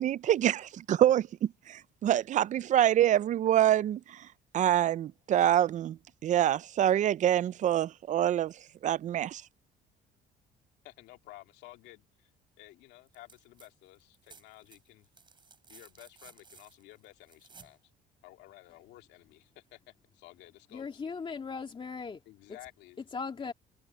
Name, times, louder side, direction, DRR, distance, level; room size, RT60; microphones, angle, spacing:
voice 1, 0.0-4.2 4.5-6.0 6.2-8.5 8.8-9.4, right 11 dB, 45° right, 0.5 m, -26 dB
voice 2, 10.8-12.3 12.6-15.1 15.6-17.8 18.2-19.8 20.1-20.8 22.3-23.0, left 17 dB, 90° left, 2.7 m, -53 dB
sound 1, 13.1-13.7 14.0-17.8 19.4-19.5, right 5 dB, 25° right, 6.5 m, -57 dB
voice 3, 20.7-22.6 23.0-23.5, left 5 dB, 30° left, 2.5 m, -39 dB
cardioid pair, 110°, 17 cm